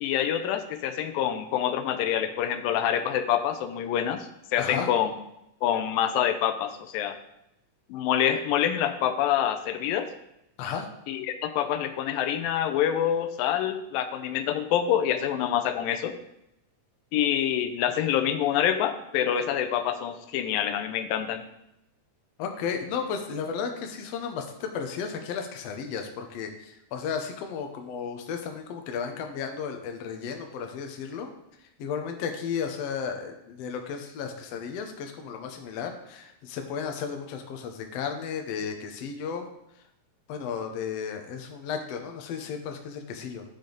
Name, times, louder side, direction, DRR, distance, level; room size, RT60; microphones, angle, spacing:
voice 1, 0.0-5.1 5.6-7.2 7.9-10.1 11.1-16.2 17.1-21.4, left 10 dB, 90° left, 8 dB, 2.4 m, -26 dB
voice 2, 4.6-4.9 10.6-10.9 22.4-31.3 31.8-39.5 40.3-43.4, left 6 dB, 70° left, 4 dB, 1.5 m, -34 dB
10.5 x 5.1 x 3.9 m, 0.81 s
omnidirectional pair, 4.0 m